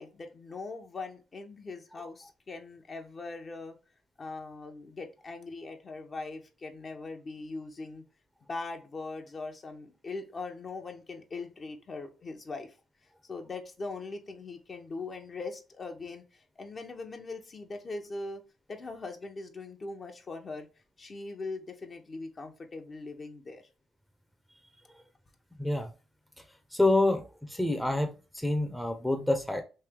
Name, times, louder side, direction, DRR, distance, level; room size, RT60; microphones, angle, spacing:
voice 1, 0.0-3.8 4.2-8.0 8.5-12.7 13.3-18.4 18.7-20.7 21.0-23.6, left 3 dB, 40° left, 4 dB, 0.8 m, -41 dB
voice 2, 25.6-25.9 26.7-29.6, left 2 dB, 5° left, 5 dB, 0.6 m, -27 dB
3.3 x 2.7 x 3.6 m, 0.33 s
supercardioid pair, 65°, 0 cm